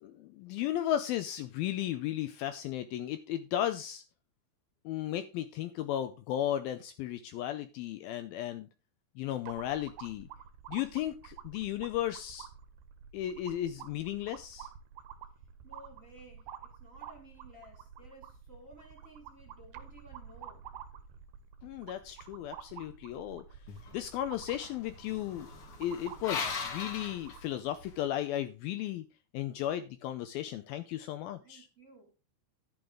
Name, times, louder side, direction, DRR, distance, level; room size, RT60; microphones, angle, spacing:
voice 1, 0.0-4.0 4.9-8.7 9.2-10.3 10.7-12.5 13.1-14.7 21.6-23.4 23.9-25.5 25.8-29.1 29.3-31.7, left 12 dB, 80° left, 2.2 m, -35 dB
sound 1, 9.5-27.5, right 8 dB, 85° right, 3.3 m, -50 dB
voice 2, 15.6-20.7 31.4-32.1, right 2 dB, 25° right, 1.9 m, -56 dB
sound 2, 23.7-28.0, left 5 dB, 45° left, 1.9 m, -40 dB
11.5 x 8.8 x 3.7 m
omnidirectional pair, 4.8 m